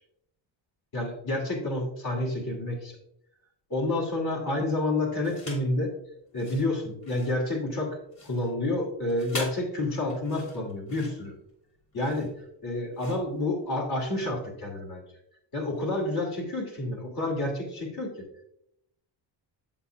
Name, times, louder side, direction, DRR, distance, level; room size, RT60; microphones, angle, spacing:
voice 1, 0.9-3.0 3.7-5.9 6.3-11.3 11.9-12.3 12.6-15.0 15.5-18.2, left 2 dB, 55° left, -1 dB, 2.6 m, -29 dB
sound 1, 5.2-5.7 6.3-14.1, left 2 dB, 35° left, 3.0 m, -43 dB
8.1 x 7.8 x 2.3 m, 0.75 s
cardioid pair, 125°, 46 cm